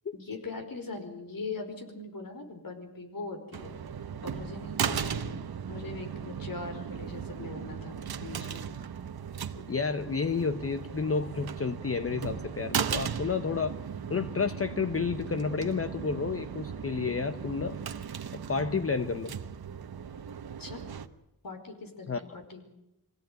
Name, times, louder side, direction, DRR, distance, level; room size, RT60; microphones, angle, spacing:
voice 1, 0.1-3.8 4.2-8.8 20.6-20.8 21.4-22.6, left 3 dB, 65° left, 5 dB, 4.9 m, -41 dB
sound 1, 3.5-21.1, right 7 dB, 80° right, 1.2 m, -37 dB
voice 2, 9.7-13.8 14.1-17.8 18.5-19.3 22.1-22.2, left 5 dB, 35° left, 10 dB, 0.9 m, -30 dB
24.0 x 17.5 x 9.3 m, 0.88 s
wide cardioid pair, 100°, 37 cm